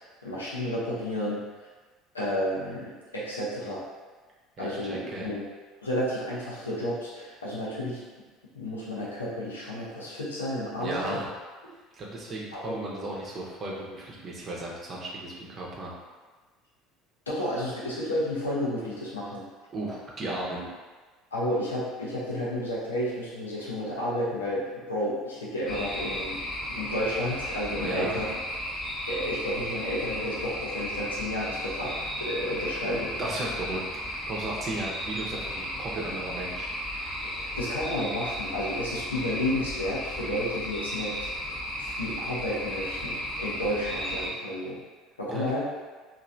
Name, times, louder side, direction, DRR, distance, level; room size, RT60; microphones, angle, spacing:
voice 1, 0.2-1.4 2.1-3.8 4.6-5.4 5.8-8.0 8.5-11.2 12.5-12.8 17.3-19.4 21.3-26.4 26.7-28.2 29.1-33.1 37.3-41.3 41.8-44.8 45.2-45.7, left 1 dB, 80° left, -7 dB, 0.7 m, -31 dB
voice 2, 4.6-5.3 10.8-11.3 11.9-15.9 19.7-20.7 27.8-28.2 33.2-33.8 34.1-36.7 45.3-45.5, right 2 dB, 35° right, -4 dB, 0.8 m, -35 dB
sound 1, 25.7-44.3, equal, 30° left, 0.7 m, -34 dB
3.1 x 2.6 x 2.6 m, 1.4 s
figure-of-eight pair, 65°, 0 cm